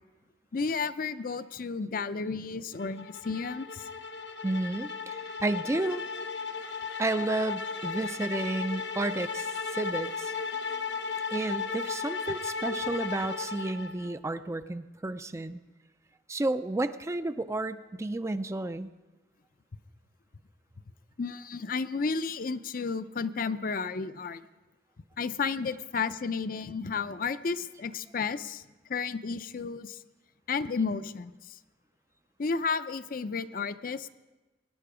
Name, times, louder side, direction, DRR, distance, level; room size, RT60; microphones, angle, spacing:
voice 1, 0.5-3.9 21.2-24.4 25.2-28.6 28.9-30.0 30.5-31.6 32.4-34.1, left 5 dB, 50° left, 13 dB, 0.5 m, -32 dB
sound 1, 2.8-14.1, left 5 dB, 85° left, 0.8 m, -35 dB
voice 2, 4.4-6.0 7.0-10.3 11.3-15.6 16.3-18.9, right 2 dB, 15° right, 11 dB, 0.4 m, -31 dB
22.5 x 10.5 x 4.9 m, 1.2 s
head